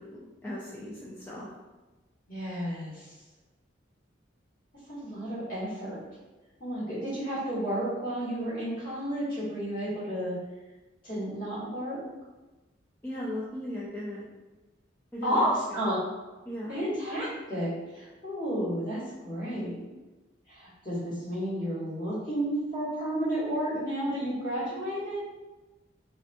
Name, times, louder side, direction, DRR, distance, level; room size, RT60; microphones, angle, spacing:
voice 1, 0.0-1.5 13.0-14.2 15.1-15.8 16.4-16.8, left 1 dB, 10° left, -9 dB, 0.3 m, -37 dB
voice 2, 2.3-3.1 4.9-6.0 6.6-10.4 11.0-12.0 15.2-16.0 16.7-19.8 20.5-25.2, equal, 45° left, -10 dB, 1.3 m, -31 dB
2.6 x 2.1 x 2.5 m, 1.1 s
head